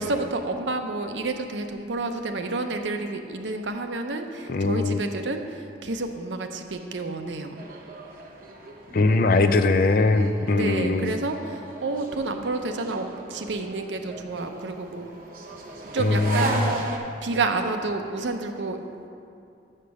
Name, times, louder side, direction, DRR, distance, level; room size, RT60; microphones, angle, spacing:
voice 1, 0.0-7.6 10.4-15.1 15.9-16.9 17.2-18.8, right 3 dB, 85° right, 6 dB, 0.7 m, -30 dB
voice 2, 4.5-5.0 8.9-11.1 16.0-16.7, left 3 dB, 50° left, 9 dB, 0.4 m, -21 dB
sound 1, 7.6-17.0, right 2 dB, 50° right, 1.0 m, -36 dB
6.9 x 6.6 x 6.3 m, 2.5 s
head